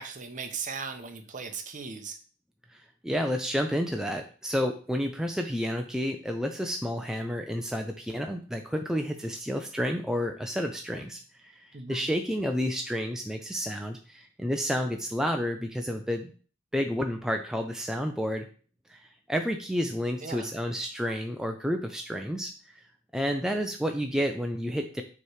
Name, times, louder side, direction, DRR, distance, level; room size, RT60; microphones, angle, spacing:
voice 1, 0.0-2.2 11.7-12.1 20.2-20.5, right 5 dB, 40° right, 6 dB, 0.8 m, -38 dB
voice 2, 2.7-16.3 16.7-18.5 18.9-22.7 23.1-25.0, equal, 5° right, 4 dB, 0.4 m, -30 dB
7.0 x 3.2 x 4.8 m, 0.40 s
head